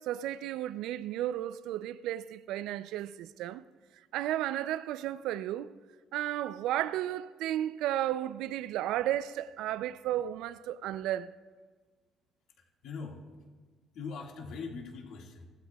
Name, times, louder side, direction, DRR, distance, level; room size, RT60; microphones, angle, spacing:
voice 1, 0.0-3.6 4.1-5.7 6.1-11.3, right 12 dB, 85° right, 0.4 m, -33 dB
voice 2, 12.6-13.2 13.9-15.5, left 4 dB, 75° left, 1.9 m, -41 dB
15.5 x 15.5 x 2.3 m
cardioid pair, 135°, 0 cm